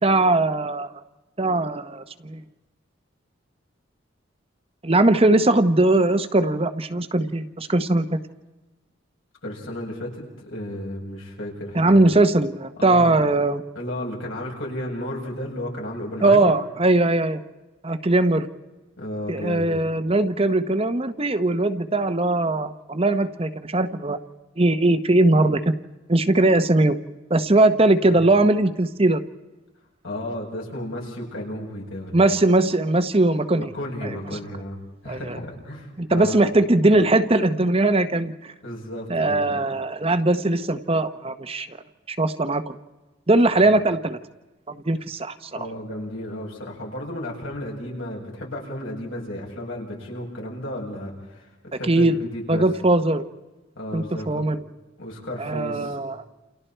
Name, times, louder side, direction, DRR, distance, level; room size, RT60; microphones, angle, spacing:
voice 1, 0.0-0.9 1.4-2.4 4.8-8.2 11.7-13.6 16.2-17.4 17.8-18.5 19.3-24.2 24.6-25.7 26.1-27.0 27.3-29.2 32.1-33.7 34.0-34.2 35.1-35.4 36.0-38.5 39.1-41.7 42.1-42.7 43.3-44.2 44.7-45.7 51.9-52.2 52.5-53.2 53.9-54.6 55.4-56.2, right 2 dB, 30° right, 9 dB, 0.9 m, -20 dB
voice 2, 9.4-12.1 12.8-13.2 13.7-16.5 19.0-19.7 28.1-28.3 30.0-32.2 33.6-34.8 35.0-36.4 38.6-39.4 43.5-43.7 45.5-52.6 53.7-54.5 55.0-56.0, left 1 dB, 75° left, -2 dB, 8.0 m, -33 dB
29.0 x 29.0 x 4.5 m, 1.1 s
head